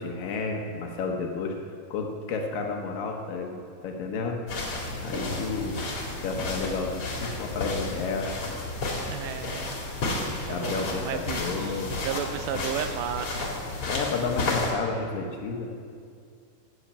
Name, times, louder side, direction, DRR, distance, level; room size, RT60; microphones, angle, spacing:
voice 1, 0.0-1.6 1.9-4.4 5.0-8.5 10.5-12.0 12.5-12.6 13.9-15.7, left 4 dB, 65° left, 2 dB, 2.3 m, -31 dB
sound 1, 4.5-14.7, left 2 dB, 45° left, 2.1 m, -32 dB
voice 2, 9.0-9.8 10.5-13.5, right 9 dB, 80° right, 9 dB, 2.7 m, -34 dB
14.0 x 7.3 x 8.7 m, 2.3 s
omnidirectional pair, 5.1 m